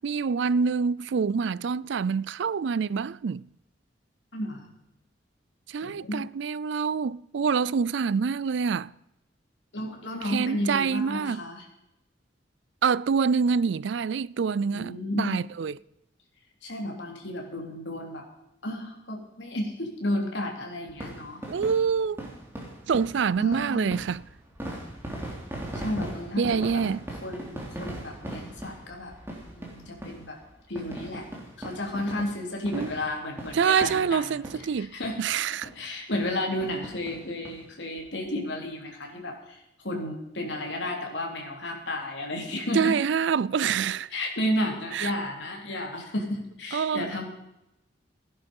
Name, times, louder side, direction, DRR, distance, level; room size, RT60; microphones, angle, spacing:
voice 1, 0.0-3.5 5.7-8.9 10.2-11.4 12.8-15.8 21.5-22.2 22.9-24.2 26.4-27.0 32.7-32.9 33.5-35.7 42.7-44.1 44.9-45.1 46.7-47.3, right 6 dB, 65° right, 0.4 m, -26 dB
voice 2, 4.3-4.7 5.8-6.2 9.7-11.7 14.7-15.4 16.6-18.2 18.6-21.4 23.4-24.0 25.7-26.8 27.2-29.1 29.6-30.4 30.7-31.3 31.6-34.2 34.8-35.2 35.7-43.0 44.1-47.3, left 1 dB, 65° left, 3.5 m, -32 dB
sound 1, 20.9-34.8 35.0-35.2 35.6-35.7 36.1-36.3 36.6-37.6 38.0-38.1 38.3-38.4, right 1 dB, 15° right, 3.4 m, -39 dB
17.0 x 10.5 x 5.5 m
head